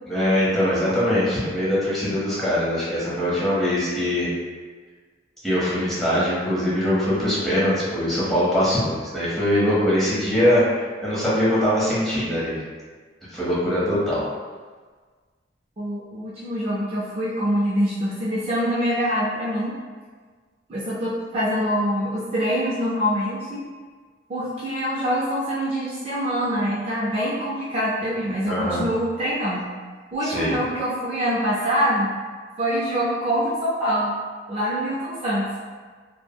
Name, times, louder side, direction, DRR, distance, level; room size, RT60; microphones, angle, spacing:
voice 1, 0.1-4.3 5.4-12.6 13.3-14.2 28.5-28.8 30.2-30.5, equal, ahead, -10 dB, 0.8 m, -22 dB
voice 2, 15.8-19.7 20.7-23.6 24.3-29.7 30.1-32.1 32.6-34.2 34.5-35.5, equal, 35° right, -8 dB, 0.4 m, -25 dB
3.4 x 2.0 x 2.2 m, 1.5 s
head